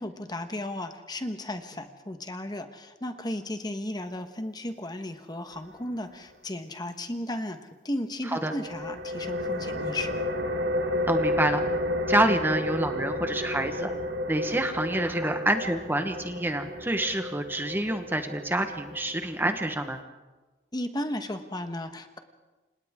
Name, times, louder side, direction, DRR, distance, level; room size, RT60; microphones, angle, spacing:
voice 1, 0.0-7.6 7.8-10.2 20.7-22.2, left 1 dB, 25° left, 7 dB, 1.3 m, -34 dB
sound 1, 8.6-20.0, left 1 dB, 85° right, 1.5 m, -32 dB
voice 2, 11.1-11.6 12.1-13.9 14.3-20.0, right 1 dB, 10° right, 6 dB, 1.2 m, -27 dB
29.5 x 26.5 x 3.7 m, 1.2 s
head